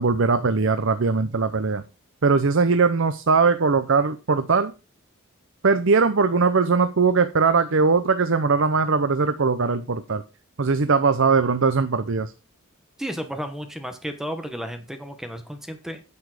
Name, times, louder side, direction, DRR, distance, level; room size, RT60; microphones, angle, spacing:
voice 1, 0.0-1.8 2.2-4.7 5.6-10.2 10.6-12.3, right 4 dB, 60° right, 11 dB, 0.7 m, -20 dB
voice 2, 13.0-16.0, equal, ahead, 7 dB, 1.2 m, -33 dB
9.7 x 7.2 x 4.9 m, 0.30 s
head